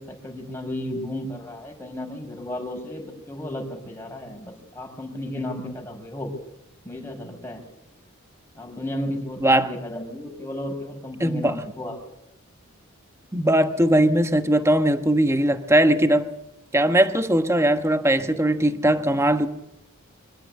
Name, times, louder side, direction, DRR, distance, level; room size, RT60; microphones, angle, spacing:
voice 1, 0.0-6.3 6.9-7.6 8.5-12.0, left 1 dB, 10° left, 2 dB, 5.4 m, -34 dB
voice 2, 11.2-11.5 13.3-16.3 16.7-19.5, right 1 dB, 15° right, 8 dB, 1.2 m, -20 dB
25.0 x 15.0 x 8.5 m, 0.83 s
head